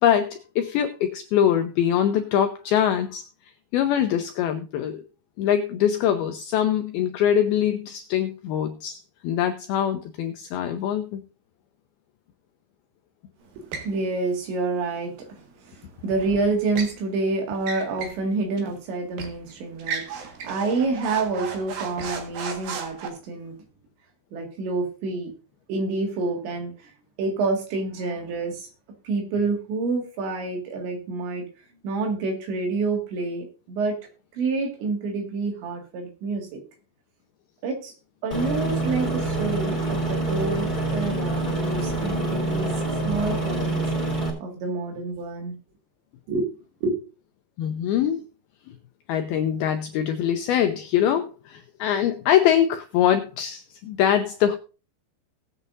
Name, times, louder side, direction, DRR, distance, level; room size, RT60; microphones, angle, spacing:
voice 1, 0.0-3.2 3.7-5.0 5.4-11.2 47.6-48.2 48.7-48.8 49.1-54.6, left 10 dB, 85° left, 7 dB, 2.2 m, -23 dB
voice 2, 13.5-23.6 24.3-25.3 25.7-26.9 27.2-28.7 29.0-31.5 31.8-34.0 34.3-36.6 37.6-37.9 38.2-42.7 43.0-43.9 44.4-45.6 46.3-46.5 46.8-47.0, right 3 dB, 80° right, 3 dB, 4.3 m, -28 dB
sound 1, 13.7-14.0 16.2-17.0 17.6-18.2 18.6-18.7 19.2-19.4 19.8-23.1, right 6 dB, 60° right, 3.1 m, -34 dB
Aircraft, 38.3-44.3, right 2 dB, 15° right, 2.8 m, -26 dB
19.0 x 8.2 x 2.6 m, 0.34 s
omnidirectional pair, 5.1 m